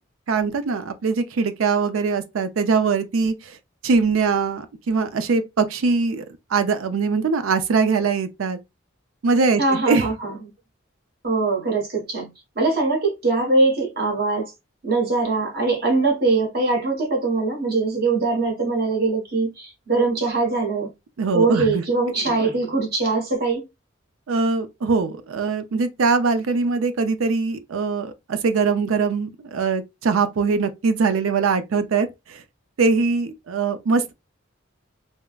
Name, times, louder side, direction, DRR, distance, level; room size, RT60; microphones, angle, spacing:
voice 1, 0.3-3.3 3.8-6.2 6.5-8.6 9.2-10.1 21.2-21.8 24.3-32.4 32.8-34.1, right 4 dB, 90° right, 0.5 m, -22 dB
voice 2, 9.6-10.4 11.2-14.5 14.8-20.9 21.3-23.6, right 3 dB, 50° right, 1.2 m, -22 dB
3.4 x 2.0 x 2.3 m
head